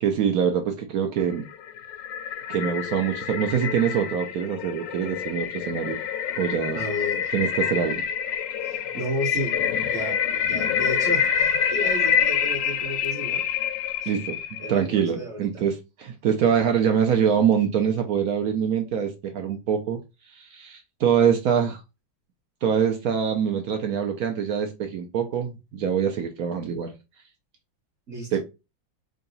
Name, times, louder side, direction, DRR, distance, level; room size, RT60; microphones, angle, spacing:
voice 1, 0.0-1.5 2.5-6.0 6.4-6.8 7.3-8.0 14.1-14.4 14.7-15.7 16.0-20.0 20.3-21.8 22.6-26.9 28.3-28.4, right 8 dB, 75° right, 0.8 m, -24 dB
sound 1, 1.4-14.8, left 8 dB, 75° left, 1.1 m, -27 dB
voice 2, 6.7-7.3 8.6-9.5 9.9-10.2 10.5-13.4 14.0-14.1 14.6-15.7 28.1-28.4, equal, 50° right, 1.0 m, -32 dB
3.7 x 2.3 x 3.9 m
omnidirectional pair, 2.2 m